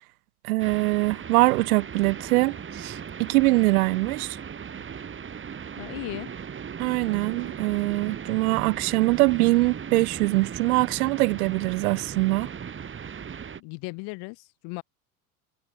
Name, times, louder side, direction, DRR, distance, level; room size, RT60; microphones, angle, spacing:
voice 1, 0.4-4.4 6.8-12.5, right 22 dB, 75° right, 0.6 m, -23 dB
sound 1, 0.6-13.6, right 7 dB, 25° right, 2.9 m, -37 dB
voice 2, 5.8-6.3 13.6-14.8, left 30 dB, 60° left, 1.5 m, -36 dB
hypercardioid pair, 85°, 44 cm